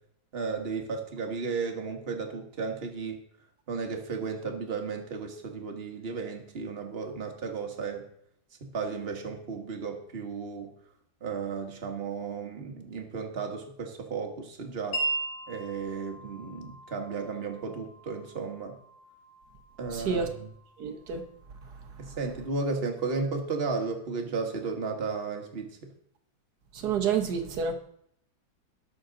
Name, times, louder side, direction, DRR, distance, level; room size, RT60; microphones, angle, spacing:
voice 1, 0.3-3.2 3.7-8.1 8.6-10.7 11.2-15.0 15.5-18.7 19.8-20.5 22.0-25.9, right 4 dB, 30° right, 4 dB, 1.5 m, -34 dB
Wind chime, 14.9-22.6, right 2 dB, 75° left, 3.6 m, -39 dB
voice 2, 19.9-20.3 20.8-21.2 21.6-22.2 26.7-27.7, right 6 dB, 55° right, 5 dB, 1.6 m, -30 dB
18.5 x 6.3 x 3.9 m, 0.69 s
omnidirectional pair, 2.2 m